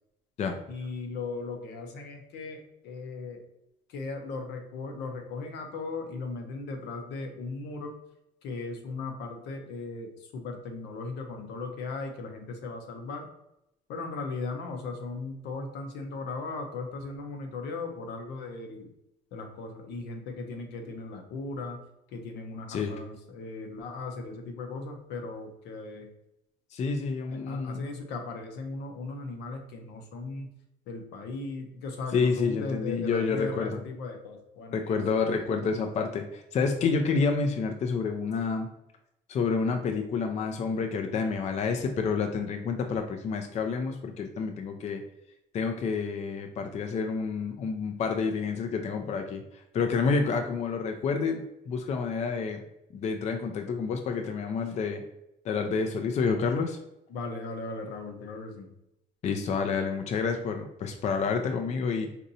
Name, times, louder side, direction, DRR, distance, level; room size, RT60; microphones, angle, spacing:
voice 1, 0.7-3.4 3.9-8.0 8.4-13.3 13.9-18.9 19.3-21.8 22.1-26.1 27.3-30.5 30.9-35.0 50.3-50.5 57.1-58.7, left 3 dB, 80° left, 3 dB, 0.7 m, -37 dB
voice 2, 26.7-27.9 32.1-33.8 34.7-38.7 39.3-45.0 45.5-49.4 49.7-52.6 52.9-55.0 55.4-56.8 59.2-62.1, left 5 dB, 40° left, 5 dB, 0.4 m, -29 dB
4.1 x 2.6 x 2.6 m, 0.85 s
cardioid pair, 110°, 17 cm